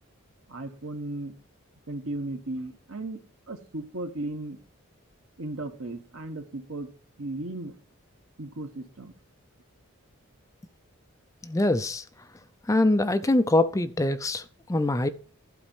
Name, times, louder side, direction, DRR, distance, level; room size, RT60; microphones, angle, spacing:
voice 1, 0.5-1.3 1.9-4.6 5.4-6.9 7.2-7.8 8.4-9.1, right 2 dB, 70° right, 1.2 m, -36 dB
voice 2, 11.4-12.0 12.7-15.1, left 2 dB, 15° left, 0.4 m, -24 dB
12.0 x 4.2 x 7.1 m
head